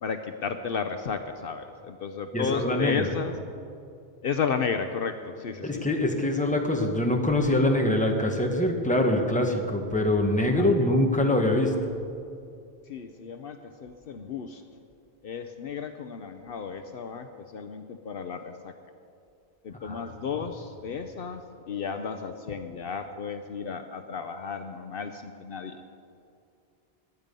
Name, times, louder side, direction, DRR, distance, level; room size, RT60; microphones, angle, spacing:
voice 1, 0.0-3.3 4.2-5.8 10.6-10.7 12.9-14.6 15.2-18.7 19.6-25.8, left 6 dB, 65° left, 8 dB, 0.9 m, -33 dB
voice 2, 2.3-3.1 5.6-11.7 19.8-20.1, left 1 dB, 5° left, 2 dB, 1.3 m, -24 dB
21.0 x 9.0 x 5.3 m, 2.4 s
omnidirectional pair, 1.1 m